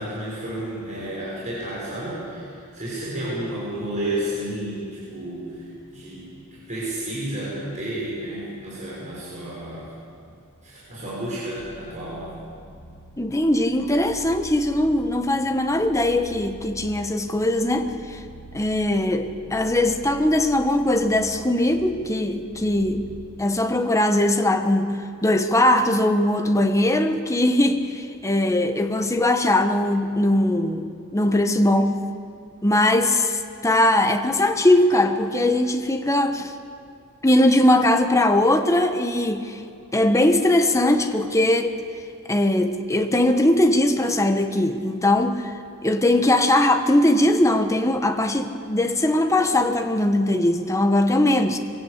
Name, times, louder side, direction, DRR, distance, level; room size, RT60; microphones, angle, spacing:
voice 1, 0.0-10.0 10.2-10.3 10.6-12.3, right 1 dB, 35° right, -7 dB, 6.3 m, -31 dB
sound 1, 11.6-23.3, right 1 dB, 60° left, 7.5 m, -45 dB
voice 2, 13.2-18.2 18.5-23.1 23.4-32.0 32.6-36.5 37.2-39.6 39.9-41.8 42.3-45.5 45.8-51.6, left 1 dB, 15° left, 6 dB, 1.2 m, -20 dB
23.0 x 17.0 x 8.6 m, 2.4 s
head